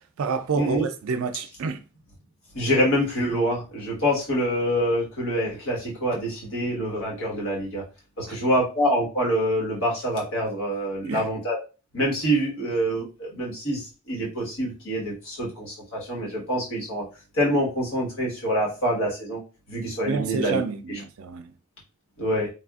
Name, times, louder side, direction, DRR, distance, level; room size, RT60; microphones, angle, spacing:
voice 1, 0.2-1.8 8.3-8.4 11.0-11.3 20.0-21.5, right 4 dB, 75° right, 0.4 m, -28 dB
voice 2, 2.5-7.8 8.2-11.6 11.9-17.0 17.3-19.4 19.7-20.6 20.9-21.0 22.2-22.5, equal, 70° left, 1.4 m, -26 dB
3.4 x 2.4 x 2.3 m
head